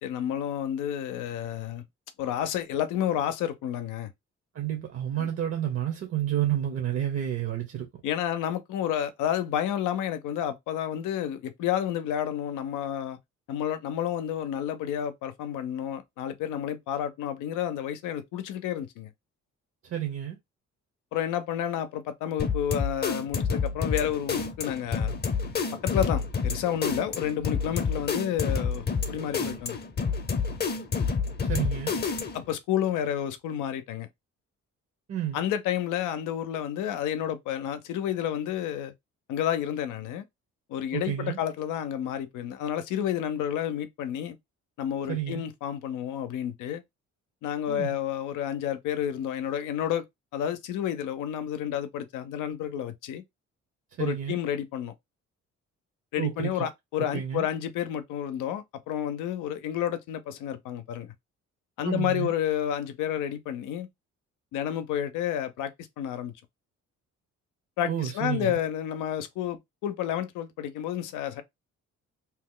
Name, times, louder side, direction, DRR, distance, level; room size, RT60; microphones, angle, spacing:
voice 1, 0.0-1.8 2.2-4.1 5.2-5.3 8.0-13.2 13.5-19.1 21.1-25.1 25.8-29.8 32.3-34.1 35.3-38.9 39.3-40.2 40.7-44.4 44.8-46.8 47.4-50.0 50.3-53.2 54.0-54.9 56.1-61.1 61.8-63.9 64.5-66.3 67.8-71.4, left 10 dB, 90° left, 0.5 m, -30 dB
voice 2, 4.5-7.9 19.8-20.4 31.4-31.9 35.1-35.4 40.9-41.4 45.1-45.4 47.7-48.0 54.0-54.4 56.2-56.7 57.0-57.5 61.8-62.3 67.8-68.6, right 11 dB, 50° right, 0.8 m, -30 dB
sound 1, 22.4-32.5, left 5 dB, 35° left, 0.6 m, -29 dB
2.8 x 2.1 x 3.6 m
cardioid pair, 90°, 30 cm